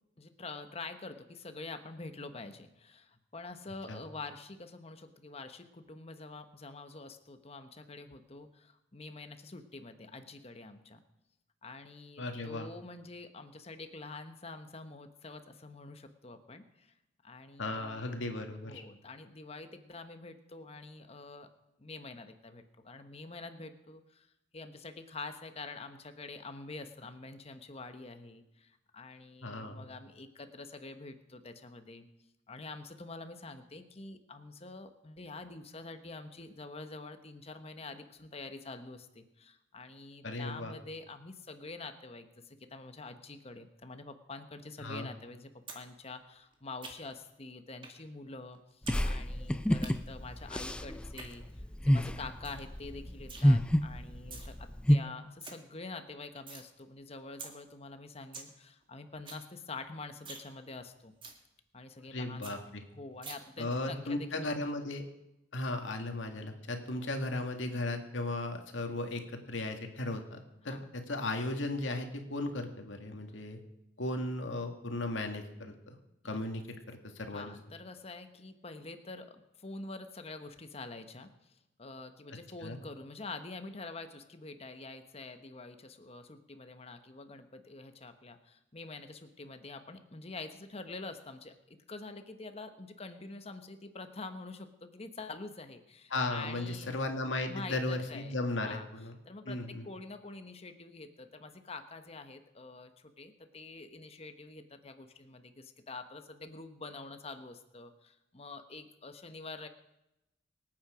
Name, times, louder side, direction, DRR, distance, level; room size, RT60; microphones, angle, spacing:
voice 1, 0.2-11.0 11.6-16.9 17.2-18.2 18.6-21.5 21.8-24.3 24.5-32.1 32.5-61.1 61.7-62.6 62.9-64.5 67.0-67.1 70.6-70.8 76.2-76.4 77.3-96.9 97.5-98.3 98.6-98.8 99.2-109.7, left 3 dB, 35° left, 8 dB, 1.2 m, -46 dB
voice 2, 12.2-12.7 17.6-18.8 29.4-29.9 40.2-40.8 44.8-45.1 62.1-62.8 63.6-65.0 65.5-70.4 70.6-73.6 74.0-76.0 76.2-77.5 82.6-82.8 96.1-99.1 99.5-99.9, left 2 dB, 85° left, 4 dB, 2.0 m, -36 dB
Lollipop Licking, 45.7-45.8 46.1-47.2 47.8-48.0 48.3-49.0 49.3-49.9 50.9-51.3 51.8-51.9 52.1-52.2 52.4-52.7 52.9-53.4 54.1-54.5 54.9-55.0 55.2-55.5 55.9-56.7 57.0-57.1 57.4-57.5 57.9-58.0 58.2-58.5 58.8-58.9 59.1-59.4 59.8-59.9 60.2-60.5 60.8-60.9 61.2-61.4 61.8-61.9 62.1-62.2 62.4-62.5 63.2-63.3, right 4 dB, 25° right, 2.1 m, -46 dB
sound 1, 48.9-55.0, equal, 5° left, 0.4 m, -29 dB
25.5 x 8.8 x 5.0 m, 0.90 s
head